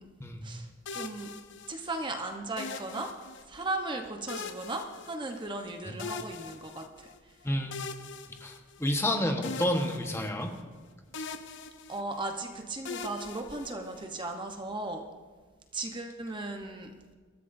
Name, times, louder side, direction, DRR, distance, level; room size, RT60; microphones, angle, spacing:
voice 1, 0.4-1.3 1.7-3.2 3.4-7.4 11.9-15.1 15.7-16.9, right 2 dB, 25° right, 4 dB, 0.9 m, -37 dB
sound 1, 0.9-2.0 2.6-3.7 4.3-5.6 6.0-7.2 7.7-9.1 9.4-10.8 11.1-12.3 12.9-14.2, left 4 dB, 60° left, 0.7 m, -42 dB
voice 2, 7.4-7.8 8.4-8.5 8.8-10.5, left 1 dB, 15° left, 3 dB, 1.2 m, -29 dB
22.5 x 14.0 x 2.7 m, 1.4 s
head